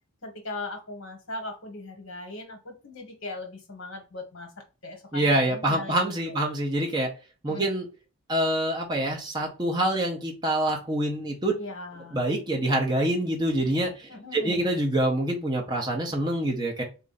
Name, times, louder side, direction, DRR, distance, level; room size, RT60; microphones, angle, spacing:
voice 1, 0.2-4.5 4.8-6.0 6.2-6.5 7.5-7.7 11.6-12.2 14.1-14.7, left 2 dB, 55° left, 1.3 m, -39 dB
voice 2, 5.1-7.1 7.4-7.9 8.3-11.5 12.1-16.8, right 1 dB, 20° right, 0.7 m, -26 dB
3.9 x 2.5 x 3.9 m
head